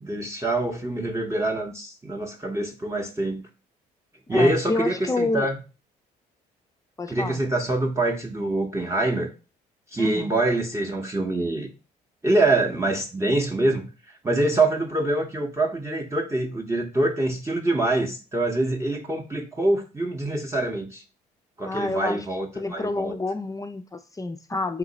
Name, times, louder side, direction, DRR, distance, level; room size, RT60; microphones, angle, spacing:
voice 1, 0.0-3.4 4.3-5.6 7.1-9.3 9.9-11.7 12.2-13.9 14.2-21.0 21.6-23.2, right 2 dB, 15° right, 0.8 m, -25 dB
voice 2, 4.3-5.5 7.0-7.4 10.0-10.3 21.7-22.3 22.6-24.8, left 2 dB, 15° left, 0.5 m, -28 dB
3.8 x 2.9 x 3.9 m
hypercardioid pair, 50°, 20 cm